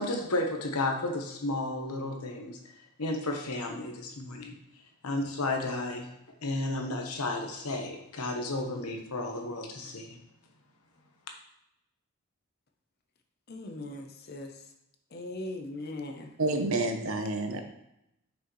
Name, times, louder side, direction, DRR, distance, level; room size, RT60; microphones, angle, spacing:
voice 1, 0.0-2.6 3.0-4.6 5.0-6.1 6.4-10.2, left 2 dB, 85° left, 3 dB, 1.1 m, -32 dB
voice 2, 13.5-14.5 15.1-16.3, left 1 dB, 45° left, 4 dB, 0.7 m, -39 dB
voice 3, 16.4-17.6, right 2 dB, 70° right, 5 dB, 0.8 m, -29 dB
6.2 x 5.5 x 3.1 m, 0.82 s
head